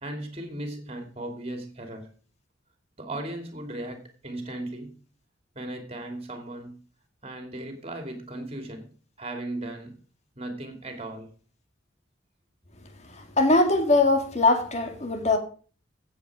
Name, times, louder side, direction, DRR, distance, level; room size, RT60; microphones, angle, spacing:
voice 1, 0.0-2.2 3.0-5.0 5.5-6.8 7.2-10.0 10.4-11.3, right 1 dB, 30° right, 2.7 m, -37 dB
voice 2, 13.4-15.4, left 2 dB, 35° left, 2.0 m, -21 dB
15.5 x 7.9 x 4.9 m
head